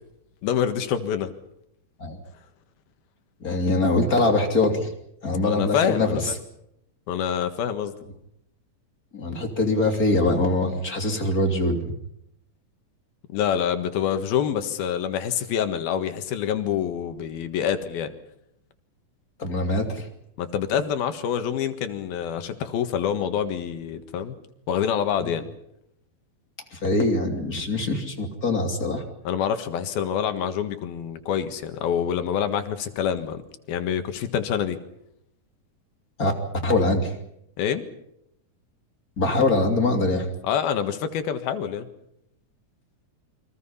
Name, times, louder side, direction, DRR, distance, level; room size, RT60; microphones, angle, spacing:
voice 1, 0.4-1.3 5.4-6.3 7.1-7.9 13.3-18.1 20.4-24.4 24.7-25.5 29.2-33.4 33.7-34.8 37.6-37.8 40.4-41.9, left 8 dB, 85° left, 8 dB, 3.5 m, -26 dB
voice 2, 3.4-4.9 5.2-6.2 9.1-11.9 19.4-20.1 25.2-25.3 26.7-29.0 36.2-36.3 36.6-37.1 39.2-40.3, left 2 dB, 25° left, 3 dB, 3.0 m, -23 dB
29.0 x 24.0 x 5.7 m, 0.78 s
omnidirectional pair, 4.2 m